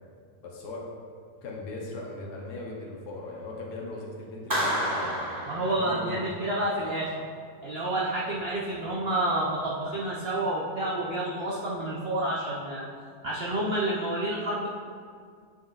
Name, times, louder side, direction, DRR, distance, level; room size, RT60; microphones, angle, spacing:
voice 1, 0.4-0.8 1.4-5.2 5.7-6.3, left 2 dB, 75° left, -2 dB, 1.4 m, -39 dB
Clapping, 4.5-6.4, equal, 15° right, 1.2 m, -30 dB
voice 2, 5.5-7.2 7.6-12.9 13.2-14.7, right 1 dB, 60° right, -4 dB, 0.6 m, -29 dB
7.9 x 5.5 x 2.4 m, 2.1 s
omnidirectional pair, 1.8 m